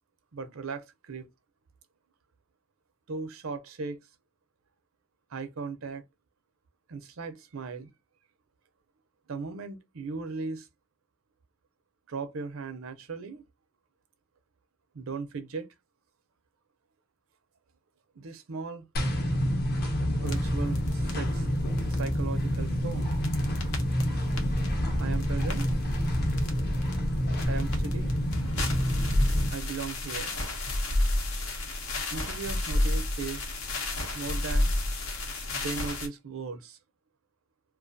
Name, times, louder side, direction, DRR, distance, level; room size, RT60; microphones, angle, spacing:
voice 1, 0.3-1.3 3.1-4.0 5.3-6.0 6.9-7.9 9.3-10.7 12.1-13.4 14.9-15.7 18.2-18.8 20.2-21.5 21.8-23.2 25.0-25.7 27.4-28.1 29.5-30.4 32.1-33.5 34.1-34.7 35.5-36.8, right 4 dB, 70° right, 0.5 m, -37 dB
sound 1, 19.0-29.5, equal, 45° left, 0.7 m, -28 dB
sound 2, 20.2-36.1, left 1 dB, 80° left, 0.8 m, -32 dB
2.4 x 2.3 x 2.5 m
head